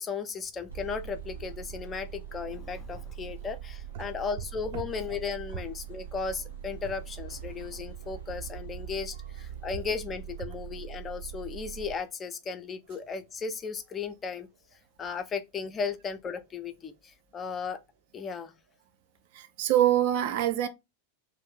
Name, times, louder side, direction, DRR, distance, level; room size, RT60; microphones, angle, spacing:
voice 1, 0.0-14.5 15.0-17.8 18.1-18.5, left 5 dB, 20° left, 0.4 m, -35 dB
sound 1, 0.7-11.9, right 10 dB, 75° right, 0.9 m, -42 dB
voice 2, 19.3-20.7, right 12 dB, 50° right, 0.3 m, -24 dB
2.4 x 2.1 x 3.6 m
figure-of-eight pair, 90°, 0 cm